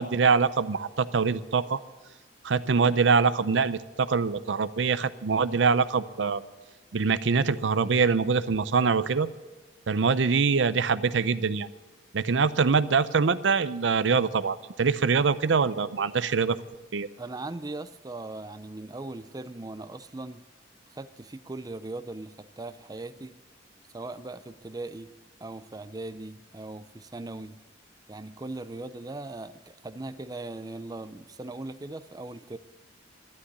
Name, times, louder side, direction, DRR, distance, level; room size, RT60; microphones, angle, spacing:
voice 1, 0.0-1.8 2.4-6.4 6.9-9.3 9.9-11.7 12.1-16.6 16.9-17.1, right 5 dB, 75° right, 15 dB, 0.6 m, -24 dB
voice 2, 17.2-20.4 20.9-23.3 23.9-25.1 25.4-27.6 28.1-32.6, right 2 dB, 20° right, 12 dB, 0.5 m, -39 dB
12.0 x 11.5 x 9.8 m, 1.2 s
head